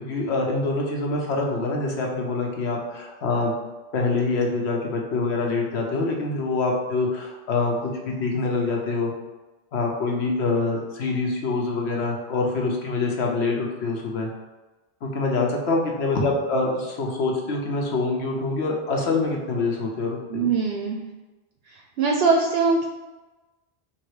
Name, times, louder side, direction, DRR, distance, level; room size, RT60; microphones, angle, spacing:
voice 1, 0.0-3.5 3.9-9.1 9.7-14.3 15.0-20.5, left 3 dB, 70° left, 0 dB, 1.1 m, -25 dB
voice 2, 20.3-21.0 22.0-22.9, right 4 dB, 65° right, 1 dB, 0.7 m, -21 dB
3.7 x 2.9 x 4.8 m, 1.2 s
omnidirectional pair, 1.2 m